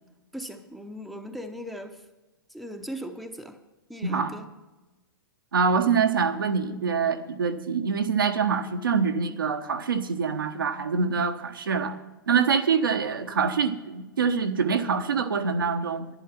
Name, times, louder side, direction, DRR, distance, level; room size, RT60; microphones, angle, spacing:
voice 1, 0.3-2.0 2.5-3.6 3.9-4.5, equal, ahead, 0.8 m, -38 dB
voice 2, 4.0-4.4 5.5-12.0 12.3-16.1, right 5 dB, 75° right, 1.1 m, -25 dB
11.0 x 10.0 x 5.9 m
figure-of-eight pair, 110°, 11 cm